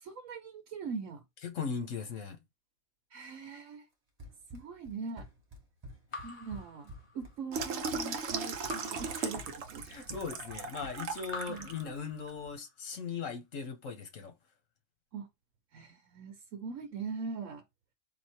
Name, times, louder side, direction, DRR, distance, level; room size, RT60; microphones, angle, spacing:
voice 1, 0.0-1.2 3.1-3.8 4.5-5.2 6.2-10.0 11.5-11.7 15.1-15.3 15.7-17.6, right 5 dB, 85° right, 1.3 m, -42 dB
voice 2, 1.4-2.4 9.2-9.3 9.9-14.3, left 5 dB, 70° left, 1.5 m, -39 dB
Run, 4.2-11.2, left 1 dB, 30° right, 1.0 m, -50 dB
Raindrop / Drip, 6.1-7.5 8.7-10.1 11.3-12.7, left 3 dB, 30° left, 0.7 m, -47 dB
Water tap faucet / Sink (filling or washing), 7.5-11.8 12.3-12.5, right 5 dB, 60° right, 1.0 m, -37 dB
3.9 x 3.0 x 4.4 m
omnidirectional pair, 1.4 m